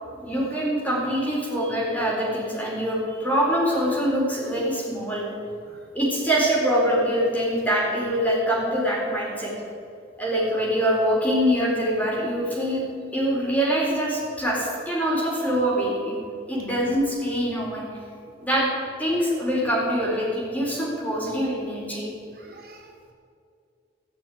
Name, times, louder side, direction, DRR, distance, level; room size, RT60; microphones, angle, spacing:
voice 1, 0.2-5.2 5.9-9.5 10.2-12.8 13.1-16.2 16.5-17.8 18.4-18.7 19.0-22.1, equal, 10° left, -5 dB, 4.3 m, -24 dB
voice 2, 22.3-23.1, right 2 dB, 50° right, 1 dB, 1.3 m, -50 dB
15.0 x 6.8 x 9.4 m, 2.3 s
head